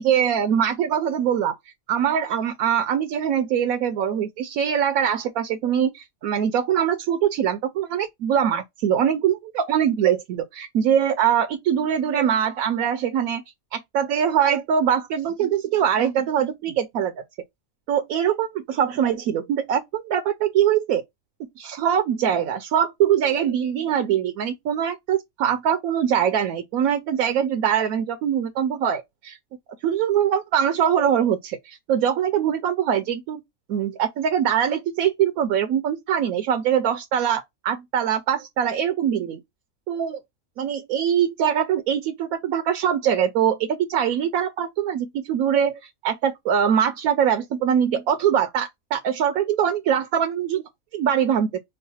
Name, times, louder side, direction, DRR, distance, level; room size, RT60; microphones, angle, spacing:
voice 1, 0.0-1.5 1.9-13.4 13.7-17.2 17.9-21.0 21.6-29.4 29.8-33.4 33.7-39.4 39.9-40.2 40.6-50.6 50.9-51.6, right 9 dB, 80° right, 1.1 m, -23 dB
5.5 x 2.1 x 4.1 m
omnidirectional pair, 1.5 m